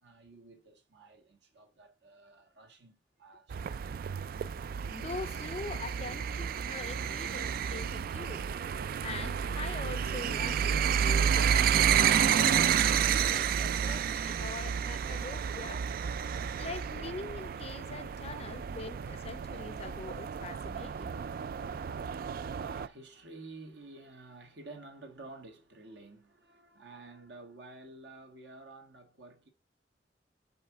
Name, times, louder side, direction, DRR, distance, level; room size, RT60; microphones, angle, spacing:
voice 1, 0.0-3.6 7.0-7.3 15.5-15.8 18.3-18.4 18.7-18.8 21.4-29.5, right 3 dB, 70° right, 1.7 m, -52 dB
sound 1, 3.5-22.9, right 8 dB, 55° right, 0.3 m, -30 dB
voice 2, 4.8-8.5 9.0-15.8 16.5-21.1, left 4 dB, 35° left, 0.5 m, -43 dB
5.6 x 4.2 x 5.9 m
head